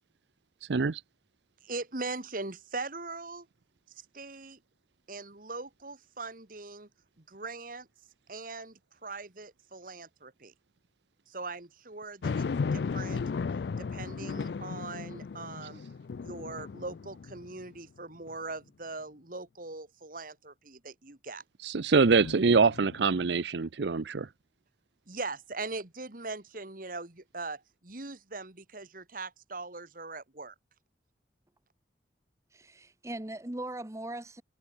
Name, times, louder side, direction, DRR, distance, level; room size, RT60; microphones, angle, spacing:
voice 1, 0.7-1.0 21.6-24.3, right 4 dB, 75° right, 0.6 m, -24 dB
voice 2, 1.6-3.5 4.0-4.6 5.1-6.9 7.2-7.9 8.3-10.5 11.3-12.5 12.7-13.2 13.8-15.8 16.2-21.4 25.1-30.5, right 3 dB, 50° right, 2.2 m, -41 dB
sound 1, 12.2-17.8 18.3-18.4 22.2-23.3, left 5 dB, 65° left, 0.4 m, -35 dB
voice 3, 32.5-34.4, right 1 dB, 15° right, 0.9 m, -39 dB
head